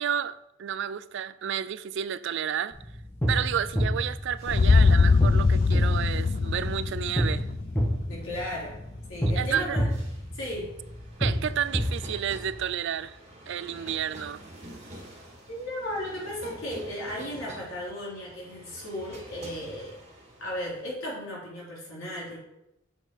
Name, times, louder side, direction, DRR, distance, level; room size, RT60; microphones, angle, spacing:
voice 1, 0.0-2.8 3.3-7.5 9.3-9.8 11.2-13.2 13.5-14.4, right 9 dB, 60° right, 0.4 m, -31 dB
sound 1, 2.7-12.7, equal, 10° left, 1.3 m, -30 dB
sound 2, 3.9-20.9, right 1 dB, 35° right, 2.3 m, -49 dB
sound 3, 4.5-8.5, left 4 dB, 40° left, 0.3 m, -22 dB
voice 2, 8.1-8.8 9.1-9.9 10.3-10.7 13.6-13.9 15.5-20.0 20.4-22.4, left 1 dB, 75° left, 3.5 m, -35 dB
8.1 x 5.7 x 4.7 m
head